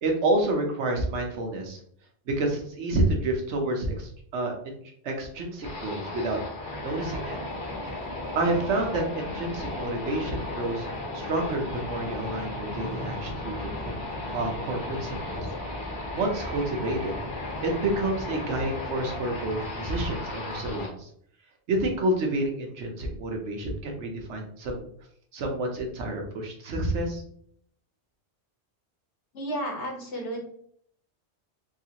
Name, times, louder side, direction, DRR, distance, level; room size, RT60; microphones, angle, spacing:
voice 1, 0.0-1.8 2.3-4.8 5.0-6.4 6.8-7.4 8.4-10.9 11.1-13.9 14.3-15.5 16.1-17.2 17.6-21.1 21.7-24.9 25.3-27.2, right 2 dB, 80° right, 2 dB, 1.1 m, -29 dB
sound 1, 5.6-20.9, left 2 dB, 55° left, 1.0 m, -35 dB
voice 2, 29.3-30.4, equal, 75° left, -1 dB, 1.3 m, -32 dB
3.7 x 2.4 x 2.8 m, 0.63 s
omnidirectional pair, 1.1 m